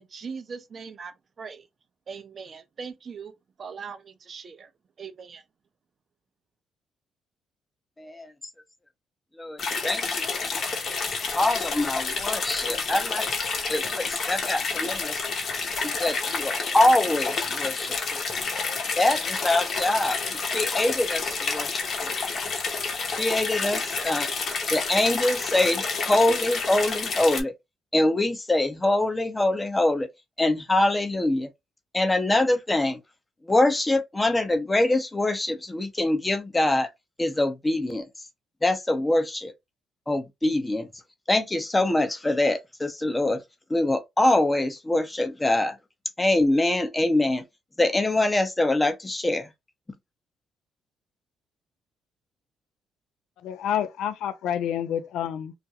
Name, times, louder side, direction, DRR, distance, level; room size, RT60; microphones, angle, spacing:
voice 1, 0.0-1.7 2.1-4.7 5.0-5.4, right 5 dB, 50° right, 0.6 m, -40 dB
voice 2, 8.0-8.3 9.4-10.3 10.5-10.6 11.3-13.3 13.7-15.2 15.8-18.2 19.0-22.1 23.2-24.3 24.7-27.5 27.9-30.1 30.4-31.5 31.9-33.0 33.4-36.9 37.2-38.3 38.6-39.5 40.1-40.9 41.3-43.4 43.7-45.8 46.2-47.4 47.8-49.5, left 2 dB, 20° left, 0.6 m, -24 dB
sound 1, 9.6-27.4, left 4 dB, 55° left, 0.8 m, -29 dB
voice 3, 53.4-55.5, left 9 dB, 80° left, 0.4 m, -28 dB
2.4 x 2.2 x 2.7 m
cardioid pair, 75°, 0 cm